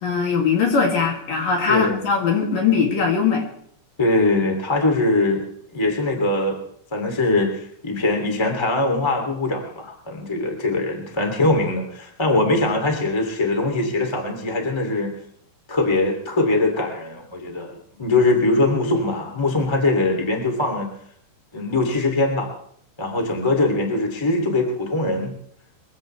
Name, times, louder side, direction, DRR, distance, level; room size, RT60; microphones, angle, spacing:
voice 1, 0.0-3.5, left 5 dB, 50° left, 0 dB, 3.6 m, -20 dB
voice 2, 1.7-2.0 4.0-5.5 5.7-6.6 6.9-15.1 15.7-20.9 21.5-22.5 23.0-25.3, left 2 dB, 15° left, 3 dB, 0.8 m, -22 dB
23.0 x 15.5 x 3.3 m, 0.66 s
omnidirectional pair, 5.8 m